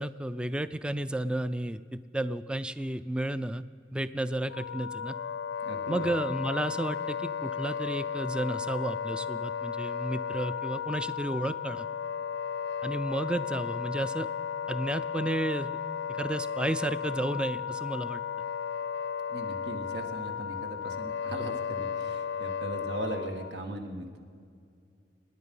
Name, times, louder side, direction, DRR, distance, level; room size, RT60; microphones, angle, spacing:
voice 1, 0.0-3.6 3.9-5.1 5.9-11.9 12.8-14.3 14.7-15.7 16.1-18.2, right 1 dB, 5° right, 14 dB, 0.3 m, -32 dB
Wind instrument woodwind instrument, 4.5-23.6, left 7 dB, 80° left, 0.3 m, -34 dB
voice 2, 5.6-6.1 19.3-24.2, right 1 dB, 75° right, 5 dB, 1.7 m, -38 dB
26.0 x 10.0 x 5.5 m, 2.3 s
head